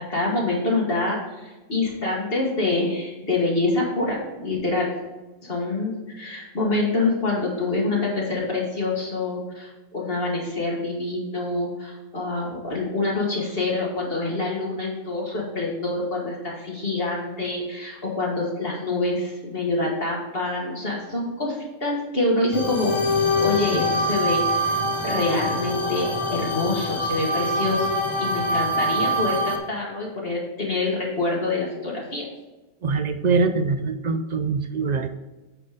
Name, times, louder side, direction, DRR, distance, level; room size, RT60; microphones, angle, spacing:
voice 1, 0.1-4.9 5.4-23.0 23.3-27.9 28.2-32.3, left 2 dB, 50° left, -3 dB, 1.8 m, -26 dB
sound 1, 22.5-29.6, left 1 dB, 25° left, 1.2 m, -24 dB
voice 2, 32.8-35.1, right 4 dB, 65° right, 9 dB, 0.4 m, -23 dB
8.9 x 4.2 x 5.0 m, 1.1 s
omnidirectional pair, 1.3 m